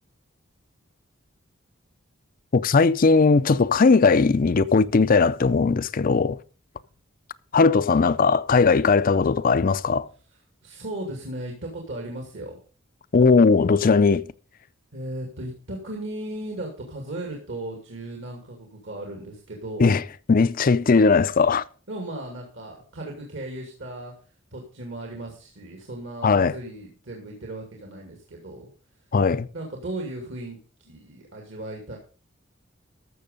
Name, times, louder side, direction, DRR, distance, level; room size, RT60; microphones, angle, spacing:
voice 1, 2.5-6.4 7.5-10.1 13.1-14.2 19.8-20.0 20.3-21.6 26.2-26.6 29.1-29.5, left 4 dB, 45° left, 0.5 m, -18 dB
voice 2, 10.6-12.6 14.9-20.0 21.9-24.1 24.5-28.7 29.5-32.0, right 1 dB, 65° right, 2.3 m, -36 dB
14.0 x 6.5 x 5.2 m
head